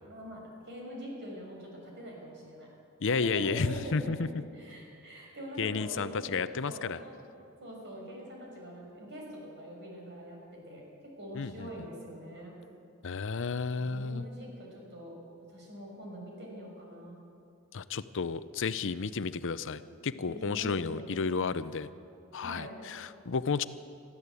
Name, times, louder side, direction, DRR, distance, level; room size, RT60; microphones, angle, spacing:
voice 1, 0.0-2.7 3.0-6.4 6.6-7.1 7.6-10.8 11.2-12.5 13.0-13.4 13.8-15.1 15.5-17.2 20.3-21.6 22.4-22.7, equal, 55° right, -1 dB, 6.2 m, -44 dB
voice 2, 3.0-4.3 5.6-7.0 11.3-11.7 13.0-14.2 17.7-21.9 22.3-23.6, left 5 dB, 60° left, 14 dB, 0.6 m, -32 dB
22.0 x 14.0 x 8.3 m, 2.5 s
head